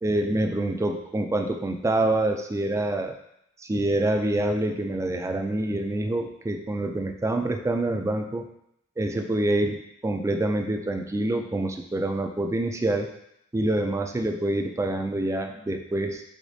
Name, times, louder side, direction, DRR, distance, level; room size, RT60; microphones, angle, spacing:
voice 1, 0.0-3.2 3.6-8.5 9.0-13.1 13.5-16.2, right 1 dB, 15° right, 5 dB, 0.3 m, -26 dB
4.9 x 4.1 x 2.7 m, 0.77 s
head